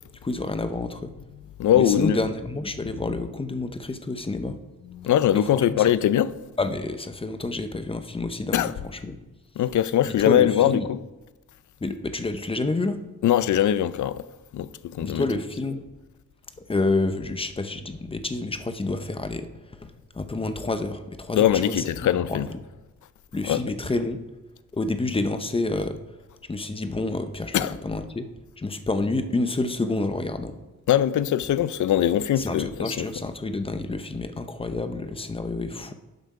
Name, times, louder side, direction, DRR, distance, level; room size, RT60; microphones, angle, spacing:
voice 1, 0.2-1.1 1.7-4.6 5.3-5.8 6.6-8.7 8.9-9.2 10.1-10.9 11.8-13.0 15.0-15.8 16.7-22.6 23.3-24.2 24.7-26.0 26.5-28.3 28.6-30.6 32.4-35.9, left 2 dB, 15° left, 0.7 m, -29 dB
voice 2, 1.6-2.2 5.0-6.3 8.5-8.7 9.6-11.0 13.2-14.2 14.5-15.3 21.3-22.5 23.5-23.6 27.5-27.7 30.9-33.1, left 11 dB, 70° left, 0.5 m, -21 dB
12.0 x 8.0 x 4.8 m
wide cardioid pair, 155°, 31 cm